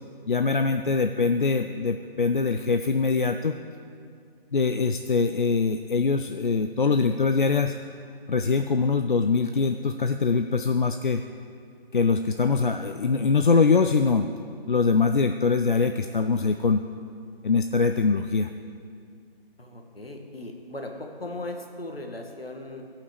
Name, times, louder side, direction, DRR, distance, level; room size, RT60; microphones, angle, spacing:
voice 1, 0.3-3.5 4.5-7.8 8.3-11.2 11.9-14.3 14.7-16.8 17.4-18.5, left 4 dB, 55° left, 7 dB, 0.5 m, -23 dB
voice 2, 19.6-22.8, left 2 dB, 70° left, 2 dB, 1.8 m, -38 dB
17.0 x 5.8 x 6.9 m, 2.3 s
figure-of-eight pair, 150°, 30 cm